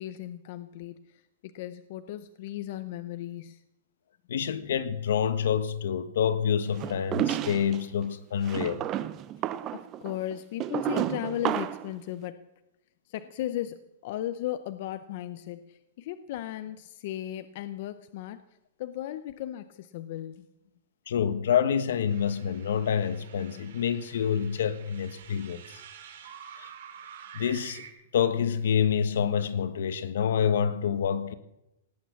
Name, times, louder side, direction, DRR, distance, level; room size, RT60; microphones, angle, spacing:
voice 1, 0.0-3.6 9.4-12.5 13.1-18.4 18.8-20.5, left 12 dB, 40° left, 0.6 m, -36 dB
voice 2, 4.3-8.9 21.1-25.8 26.6-26.7 27.3-27.8 28.1-31.3, left 8 dB, 65° left, 1.3 m, -27 dB
sound 1, 6.8-7.8 8.4-11.9, right 12 dB, 20° right, 0.5 m, -31 dB
sound 2, 22.1-27.9, right 8 dB, 60° right, 3.2 m, -48 dB
18.0 x 8.8 x 8.3 m
supercardioid pair, 180°, 0 cm